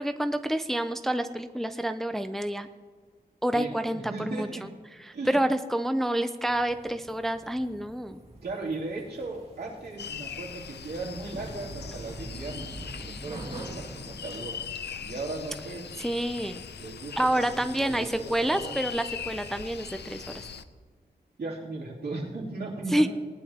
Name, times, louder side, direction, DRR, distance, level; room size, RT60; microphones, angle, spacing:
voice 1, 0.0-2.7 3.4-4.5 5.3-8.2 16.0-16.6 17.2-20.4 22.9-23.1, right 1 dB, ahead, 9 dB, 0.5 m, -28 dB
voice 2, 3.5-4.7 5.1-5.4 8.4-14.6 15.0-15.9 16.8-18.8 21.4-23.1, right 3 dB, 75° right, -4 dB, 3.0 m, -37 dB
sound 1, 6.5-20.6, right 1 dB, 35° right, 2.2 m, -46 dB
sound 2, 10.0-20.6, left 7 dB, 85° left, 0.6 m, -41 dB
19.5 x 10.5 x 2.9 m, 1.5 s
wide cardioid pair, 105°, 17 cm